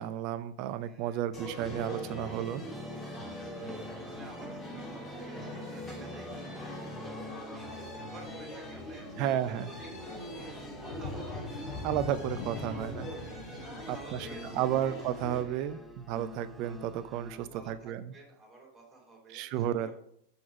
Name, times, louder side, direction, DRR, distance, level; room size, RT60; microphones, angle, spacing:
voice 1, 0.0-2.6 9.2-9.7 11.8-13.3 13.9-14.2 14.5-18.1 19.3-19.9, right 11 dB, 45° right, 14 dB, 0.5 m, -32 dB
voice 2, 0.8-1.3 3.0-11.8 12.5-14.7 15.3-15.9 17.0-19.9, right 3 dB, 20° right, -2 dB, 3.6 m, -53 dB
sound 1, 1.3-15.4, equal, 20° left, 2.9 m, -42 dB
sound 2, 1.7-17.5, left 1 dB, 5° right, 0.8 m, -47 dB
sound 3, 10.9-16.3 16.8-16.9 17.4-17.5, left 5 dB, 40° left, 1.0 m, -43 dB
7.0 x 6.0 x 4.9 m, 0.71 s
figure-of-eight pair, 90°, 0 cm